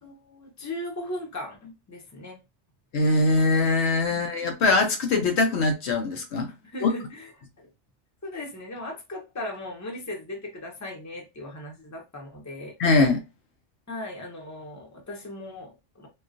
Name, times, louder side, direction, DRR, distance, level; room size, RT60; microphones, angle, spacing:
voice 1, 0.0-2.4 6.6-7.3 7.6-7.7 8.2-12.7 13.9-16.1, left 1 dB, 15° left, 0.8 m, -38 dB
voice 2, 2.9-6.5 6.8-6.9 12.8-13.2, left 3 dB, 70° left, 0.9 m, -22 dB
3.7 x 2.4 x 2.5 m
omnidirectional pair, 1.2 m